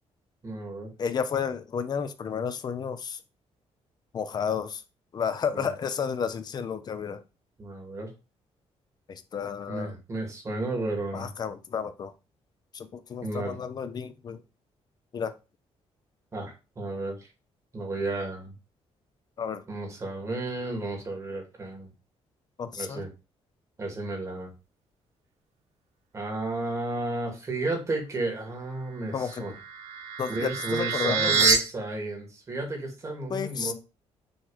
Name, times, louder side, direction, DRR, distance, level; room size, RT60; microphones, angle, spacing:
voice 1, 0.4-0.9 5.5-5.7 7.6-8.1 9.7-11.3 13.2-13.6 16.3-17.3 17.7-18.5 19.7-21.9 22.8-23.1 23.8-24.5 26.1-29.5 30.3-33.7, right 2 dB, 25° right, 2.3 m, -33 dB
voice 2, 1.0-3.2 4.1-4.8 5.1-7.2 9.1-9.9 11.1-12.1 12.7-14.4 15.1-15.3 19.4-19.6 22.6-23.0 29.1-29.4 30.2-31.5 33.3-33.7, left 6 dB, 35° left, 0.6 m, -32 dB
sound 1, 29.3-31.6, right 5 dB, 85° right, 1.3 m, -26 dB
6.3 x 3.2 x 4.9 m
cardioid pair, 155°, 11 cm